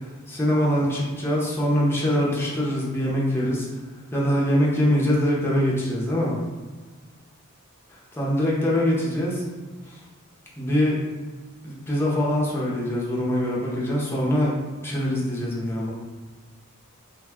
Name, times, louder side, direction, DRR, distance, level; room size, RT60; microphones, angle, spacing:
voice 1, 0.3-3.7 4.1-6.4 8.1-9.4 9.9-10.0 10.6-11.0 11.6-14.5 14.8-15.9, equal, 10° left, -5 dB, 0.6 m, -23 dB
2.6 x 2.2 x 3.4 m, 1.4 s
head